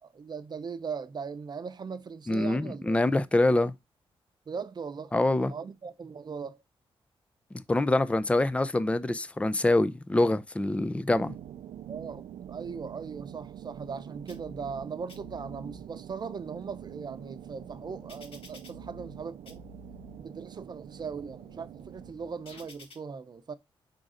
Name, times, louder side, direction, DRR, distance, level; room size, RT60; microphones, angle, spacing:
voice 1, 0.0-3.0 4.5-6.6 11.9-19.6 20.2-23.5, right 5 dB, 45° right, 0.8 m, -39 dB
voice 2, 2.3-3.7 5.1-5.5 7.7-11.3, left 2 dB, 10° left, 0.5 m, -25 dB
sound 1, 11.1-22.1, right 11 dB, 80° right, 0.4 m, -45 dB
sound 2, 14.3-14.8 15.1-15.8 16.4-19.2 19.5-20.2 20.7-22.9, left 3 dB, 70° left, 1.8 m, -52 dB
5.2 x 3.8 x 4.9 m
cardioid pair, 75°, 10 cm